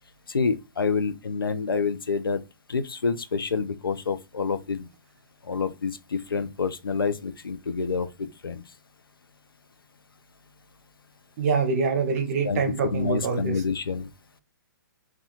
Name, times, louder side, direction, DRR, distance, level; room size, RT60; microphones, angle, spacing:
voice 1, 0.3-2.4 2.7-4.9 5.4-8.6 12.4-12.6 12.9-14.1, left 5 dB, 85° left, 0.4 m, -28 dB
voice 2, 11.4-13.6, right 5 dB, 45° right, 0.7 m, -25 dB
2.4 x 2.2 x 2.8 m
figure-of-eight pair, 125°, 12 cm